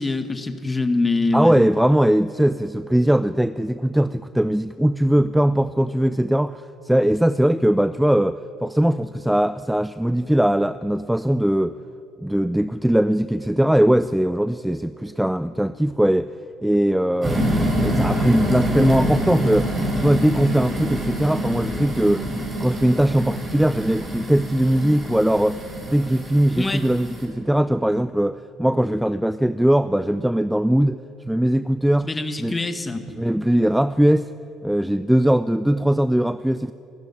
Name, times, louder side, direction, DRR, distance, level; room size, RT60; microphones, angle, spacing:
voice 1, 0.0-1.6 26.6-26.8 32.0-33.0, left 2 dB, 20° left, 8 dB, 1.9 m, -24 dB
voice 2, 1.3-11.7 12.2-16.3 16.6-19.7 20.0-22.3 22.6-31.0 31.3-32.1 32.4-32.6 33.2-34.3 34.6-36.7, right 1 dB, 5° right, 15 dB, 0.5 m, -20 dB
sound 1, 17.2-27.2, equal, 30° right, 7.0 m, -26 dB
29.0 x 12.5 x 9.8 m, 2.9 s
figure-of-eight pair, 55°, 0 cm